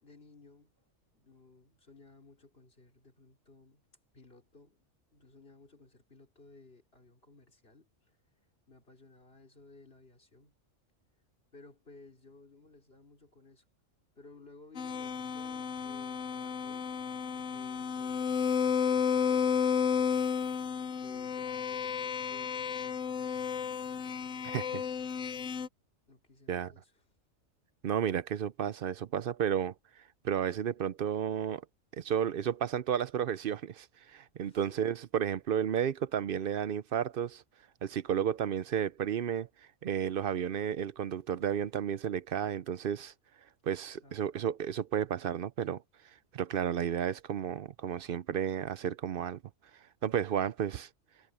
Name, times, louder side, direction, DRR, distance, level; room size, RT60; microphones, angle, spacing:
voice 1, 0.0-3.8 4.1-4.9 5.1-8.2 8.7-10.5 11.5-13.6 14.2-16.9 17.3-20.2 20.8-23.6 24.0-24.8 26.1-27.1 34.4-34.8 44.0-44.4, left 3 dB, 50° left, 3.8 m, -58 dB
sound 1, 14.7-25.7, left 7 dB, 80° left, 1.1 m, -32 dB
voice 2, 24.4-24.8 26.5-26.7 27.8-29.7 30.2-31.6 32.0-37.4 37.8-39.5 39.8-43.1 43.6-45.8 46.3-49.4 50.0-50.9, right 9 dB, 55° right, 0.7 m, -32 dB
omnidirectional pair, 1.3 m